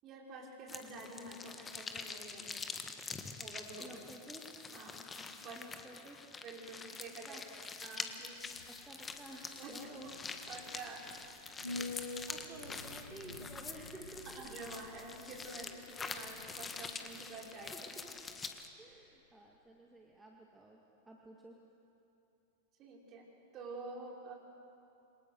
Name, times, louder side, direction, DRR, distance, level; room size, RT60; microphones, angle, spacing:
voice 1, 0.0-2.6 3.4-4.0 4.7-5.6 6.4-7.4 7.8-8.4 9.6-10.1 10.5-11.1 11.4-11.7 14.3-17.7 22.8-23.3 23.5-24.4, right 3 dB, 35° right, -1 dB, 5.3 m, -48 dB
sound 1, 0.7-18.7, left 4 dB, 15° left, 1.7 m, -46 dB
voice 2, 3.8-4.4 5.5-6.2 7.2-7.4 8.7-10.1 11.7-14.5 15.5-15.9 17.7-18.3 18.8-20.8 21.1-21.6, right 2 dB, 10° right, -1 dB, 2.2 m, -53 dB
sound 2, 8.2-18.7 19.0-19.1, left 2 dB, 80° left, 1.9 m, -49 dB
27.5 x 25.0 x 6.6 m, 2.8 s
figure-of-eight pair, 90°, 0 cm